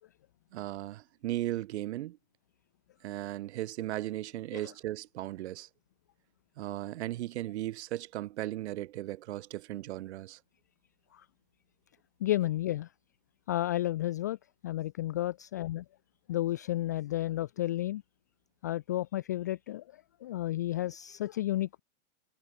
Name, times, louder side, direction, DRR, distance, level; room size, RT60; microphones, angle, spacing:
voice 1, 0.5-2.2 3.0-5.7 6.6-10.4, right 15 dB, 50° right, 5.8 m, -36 dB
voice 2, 12.2-12.9 13.5-14.4 14.6-15.8 16.3-18.0 18.6-21.8, left 14 dB, 15° left, 0.4 m, -32 dB
supercardioid pair, 170°, 42 cm